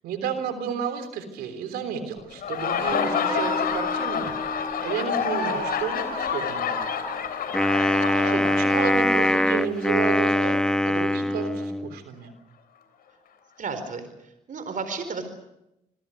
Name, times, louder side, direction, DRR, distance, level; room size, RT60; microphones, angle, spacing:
voice 1, 0.0-4.4 4.8-6.8 7.9-12.3, right 7 dB, 85° right, 9 dB, 3.5 m, -32 dB
Laughter, 2.3-9.9, left 6 dB, 70° left, 3.7 m, -28 dB
Guitar, 2.9-7.8, left 3 dB, 35° left, 5.0 m, -37 dB
Wind instrument woodwind instrument, 7.5-12.0, left 1 dB, 5° left, 0.9 m, -22 dB
voice 2, 13.6-15.3, right 4 dB, 60° right, 9 dB, 4.4 m, -33 dB
26.5 x 23.0 x 6.7 m, 0.85 s
supercardioid pair, 50°, 16 cm